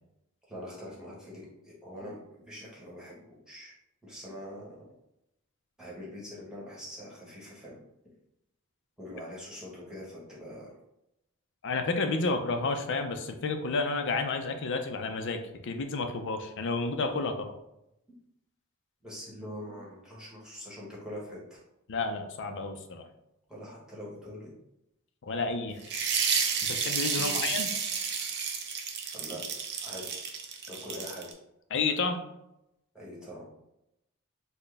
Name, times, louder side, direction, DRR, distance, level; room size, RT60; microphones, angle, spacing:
voice 1, 0.5-3.7 4.0-4.7 5.8-7.8 9.0-10.7 19.0-21.6 23.5-24.5 27.1-27.4 29.1-29.4 29.8-30.2 30.7-31.3 32.9-33.5, equal, 5° right, -6 dB, 1.2 m, -43 dB
voice 2, 11.6-17.5 21.9-23.1 25.2-25.8 26.6-27.7 31.7-32.2, left 3 dB, 55° left, 6 dB, 0.5 m, -31 dB
sound 1, 25.8-31.3, right 6 dB, 50° right, 0.6 m, -31 dB
4.3 x 2.1 x 3.3 m, 0.84 s
head